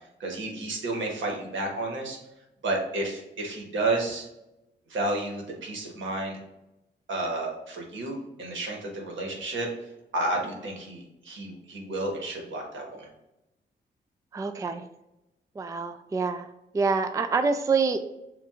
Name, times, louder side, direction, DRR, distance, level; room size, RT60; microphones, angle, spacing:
voice 1, 0.2-2.2 2.6-4.3 4.9-6.4 7.1-9.7 10.1-13.1, right 2 dB, 75° right, 0 dB, 1.3 m, -31 dB
voice 2, 14.3-14.8 15.6-16.5 16.7-18.0, right 4 dB, 15° right, 7 dB, 0.3 m, -26 dB
7.1 x 2.5 x 2.4 m, 0.92 s
cardioid pair, 75°, 20 cm